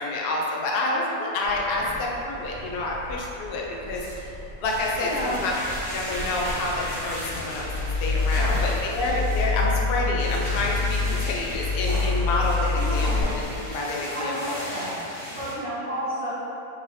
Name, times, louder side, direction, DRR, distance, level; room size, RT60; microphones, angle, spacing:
voice 1, 0.0-4.3 4.6-5.5 5.9-13.4 13.7-14.6, left 2 dB, 90° left, -2 dB, 0.5 m, -28 dB
sound 1, 1.4-13.6, equal, 50° right, 0.9 m, -39 dB
voice 2, 1.6-2.0 5.0-5.4 8.3-8.7 12.8-13.3 14.1-15.0 15.4-16.3, equal, 65° right, -15 dB, 1.6 m, -31 dB
sound 2, 4.6-15.5, equal, 35° left, 1.0 m, -37 dB
sound 3, 7.6-13.2, left 4 dB, 80° right, 1.1 m, -26 dB
4.0 x 2.6 x 3.1 m, 2.9 s
omnidirectional pair, 1.6 m